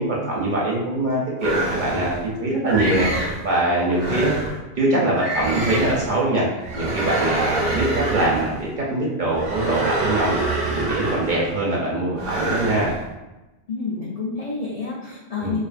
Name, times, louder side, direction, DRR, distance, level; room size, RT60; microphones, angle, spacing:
voice 1, 0.0-4.3 4.8-10.4 10.7-13.0 15.4-15.6, right 1 dB, 55° right, -5 dB, 0.5 m, -23 dB
sound 1, 1.4-2.2 2.7-3.4 3.9-4.6 5.1-6.1 6.6-8.6 9.3-11.5 12.2-13.0, right 2 dB, 90° right, 1.1 m, -26 dB
voice 2, 13.7-15.6, left 4 dB, 65° left, -6 dB, 0.3 m, -29 dB
2.4 x 2.4 x 2.4 m, 1.1 s
omnidirectional pair, 1.2 m